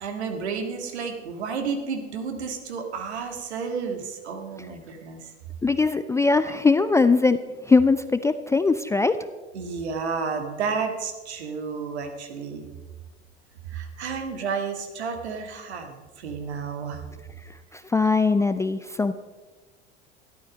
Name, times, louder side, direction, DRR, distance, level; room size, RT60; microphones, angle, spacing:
voice 1, 0.0-5.3 9.5-12.6 13.7-17.0, right 5 dB, 70° right, 5 dB, 1.9 m, -31 dB
voice 2, 5.6-7.4 7.7-9.2 17.7-19.1, left 4 dB, 10° left, 12 dB, 0.4 m, -21 dB
13.0 x 12.0 x 5.2 m, 1.3 s
figure-of-eight pair, 75°, 34 cm